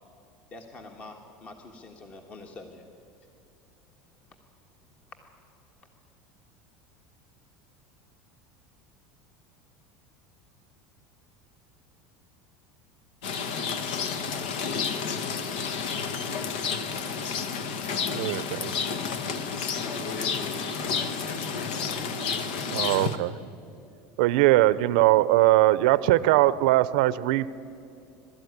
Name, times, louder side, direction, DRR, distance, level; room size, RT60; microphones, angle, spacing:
voice 1, 0.5-2.9, left 2 dB, 30° left, 4 dB, 1.5 m, -45 dB
Rain, 13.2-23.2, left 6 dB, 85° left, 1.3 m, -30 dB
voice 2, 18.1-18.7 22.7-23.3 24.2-27.5, right 16 dB, 75° right, 17 dB, 0.6 m, -21 dB
voice 3, 19.2-23.1, left 2 dB, 55° left, 4 dB, 4.0 m, -41 dB
22.0 x 13.0 x 9.5 m, 2.6 s
supercardioid pair, 145°, 4 cm